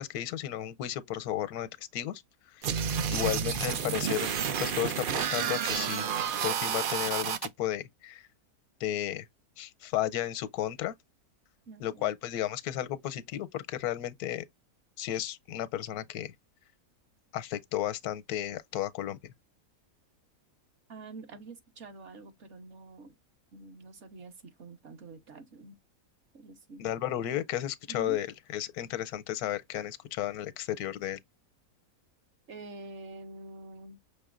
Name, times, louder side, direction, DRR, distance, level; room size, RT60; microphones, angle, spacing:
voice 1, 0.0-2.2 2.6-2.7 3.1-4.3 4.6-6.1 6.4-8.2 8.8-9.3 9.6-10.9 11.8-14.5 15.0-16.3 17.3-19.2 26.8-28.3 28.5-31.2, left 12 dB, 85° left, 1.1 m, -33 dB
sound 1, 2.6-7.5, right 7 dB, 75° right, 0.4 m, -30 dB
voice 2, 11.7-12.1 20.9-23.2 23.5-25.8 26.3-26.8 27.9-28.2 32.5-34.0, right 3 dB, 55° right, 1.2 m, -47 dB
6.1 x 3.4 x 2.4 m
omnidirectional pair, 1.6 m